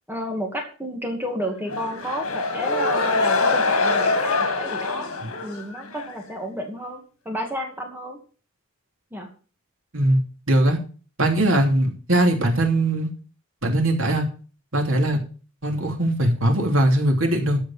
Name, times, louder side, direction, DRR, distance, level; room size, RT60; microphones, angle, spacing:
voice 1, 0.1-5.1 5.4-7.0 7.3-8.2 9.1-9.3, equal, 10° right, 2 dB, 2.3 m, -31 dB
sound 1, 1.7-6.2, left 3 dB, 85° left, 2.1 m, -24 dB
voice 2, 10.5-10.8 11.2-13.1 13.6-14.3 14.7-15.2 15.6-17.6, right 1 dB, 70° right, 3 dB, 3.0 m, -20 dB
13.5 x 5.2 x 7.4 m, 0.38 s
head